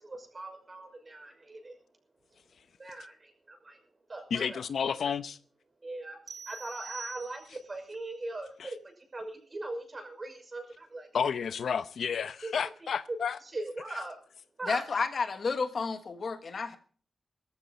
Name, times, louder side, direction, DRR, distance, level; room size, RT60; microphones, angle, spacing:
voice 1, 0.0-1.8 2.8-3.8 4.1-4.6 5.0-5.1 5.8-11.1 12.4-12.9 13.4-14.2 14.6-14.8, right 2 dB, 25° right, 5.7 m, -41 dB
voice 2, 4.3-5.4 8.6-8.7 11.1-13.4, left 7 dB, 70° left, 0.8 m, -31 dB
sound 1, 6.3-7.8, right 6 dB, 50° right, 1.1 m, -45 dB
voice 3, 14.7-16.8, left 4 dB, 45° left, 1.4 m, -31 dB
19.0 x 14.5 x 4.2 m
wide cardioid pair, 155°, 0 cm